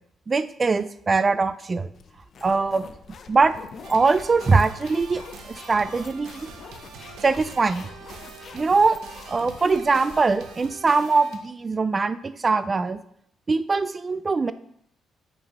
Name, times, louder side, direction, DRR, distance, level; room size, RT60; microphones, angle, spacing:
voice 1, 0.3-1.9 2.4-2.9 3.3-3.5 3.9-6.5 7.2-7.9 8.5-9.0 9.3-13.0 13.5-14.5, right 4 dB, 30° right, 13 dB, 0.4 m, -22 dB
sound 1, 2.0-10.7, left 6 dB, 55° left, 0.5 m, -45 dB
sound 2, 3.8-11.4, right 5 dB, 80° right, 0.8 m, -44 dB
4.8 x 3.9 x 5.3 m, 0.69 s
cardioid pair, 90°, 0 cm